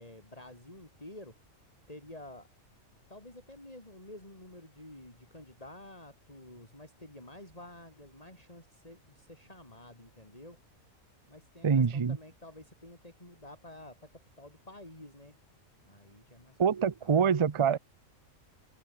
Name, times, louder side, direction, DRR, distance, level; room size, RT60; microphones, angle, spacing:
voice 1, 0.0-1.5 1.9-2.5 3.1-10.6 11.3-15.4 15.8-16.7 17.0-17.2, left 1 dB, 25° left, 5.5 m, -50 dB
voice 2, 11.6-12.2 16.6-17.8, right 6 dB, 35° right, 0.5 m, -25 dB
omnidirectional pair, 1.4 m